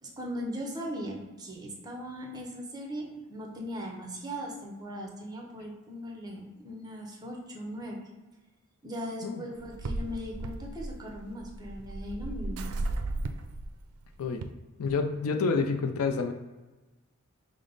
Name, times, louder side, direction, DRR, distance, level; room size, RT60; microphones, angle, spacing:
voice 1, 0.0-8.0 8.8-12.8 13.1-13.2, equal, 20° right, -1 dB, 0.7 m, -39 dB
sound 1, 9.6-14.4, right 2 dB, 90° right, 0.4 m, -35 dB
voice 2, 14.8-16.3, left 4 dB, 85° left, 5 dB, 0.4 m, -28 dB
5.1 x 2.0 x 3.9 m, 1.2 s
head